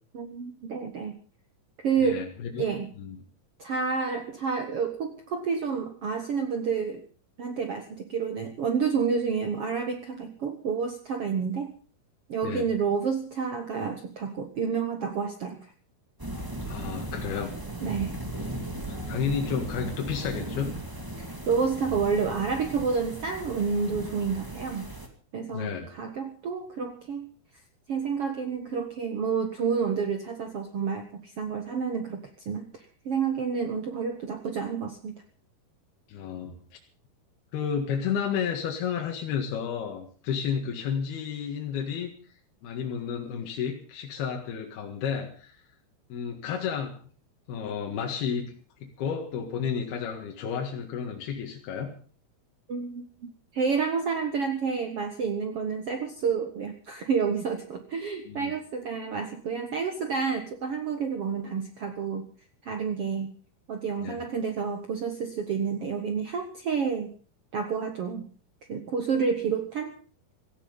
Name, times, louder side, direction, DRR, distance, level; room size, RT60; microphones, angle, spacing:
voice 1, 0.1-1.1 1.8-2.2 2.6-2.9 3.6-7.0 7.4-11.7 12.3-15.7 17.8-18.2 21.5-24.9 25.3-27.3 27.9-35.1 52.7-62.2 62.6-63.3 63.7-67.1 67.5-68.2 68.7-69.9, right 5 dB, 65° right, 7 dB, 1.5 m, -29 dB
voice 2, 2.0-2.6 3.0-3.2 12.4-12.6 16.7-17.5 18.3-18.4 18.9-20.7 25.5-25.9 36.1-36.6 37.5-42.1 42.6-45.6 46.1-47.0 47.5-48.5 48.8-51.9 58.3-58.5 64.0-64.3, left 7 dB, 80° left, 2 dB, 3.8 m, -32 dB
sound 1, 16.2-25.1, right 1 dB, 10° right, 1.2 m, -37 dB
17.0 x 14.5 x 5.5 m, 0.40 s
omnidirectional pair, 4.5 m